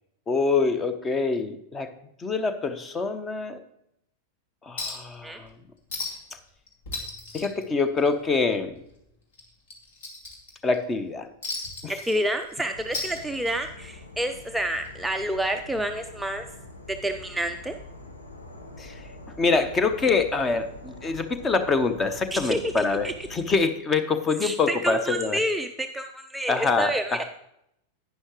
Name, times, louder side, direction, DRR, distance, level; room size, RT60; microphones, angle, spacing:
voice 1, 0.3-1.9 2.2-3.6 4.6-5.6 7.3-8.8 10.6-11.3 11.8-12.0 18.8-19.1 19.4-25.4 26.5-27.2, left 4 dB, 20° left, 11 dB, 0.9 m, -25 dB
Chink clink, 4.8-5.1 5.4-5.5 5.9-6.4 6.7-8.4 8.7-8.9 9.3-10.8 11.4-12.5 12.8-13.7 14.8-14.9, left 3 dB, 55° left, 2.3 m, -35 dB
voice 2, 12.1-16.5 17.0-17.7 22.3-23.1 24.4-27.2, right 1 dB, 5° right, 5 dB, 0.4 m, -29 dB
Insect / Frog, 12.7-23.5, left 1 dB, 75° left, 1.2 m, -45 dB
11.0 x 9.3 x 3.1 m, 0.78 s
figure-of-eight pair, 90°, 0 cm